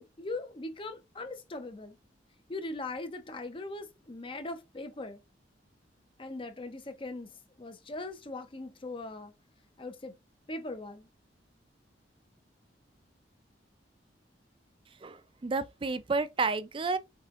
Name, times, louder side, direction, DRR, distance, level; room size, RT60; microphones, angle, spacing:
voice 1, 0.0-2.0 2.5-5.2 6.2-9.3 9.8-10.1 10.5-11.1, left 2 dB, 30° left, 0.7 m, -40 dB
voice 2, 15.0-17.0, right 4 dB, 30° right, 0.4 m, -31 dB
4.9 x 3.8 x 2.5 m
head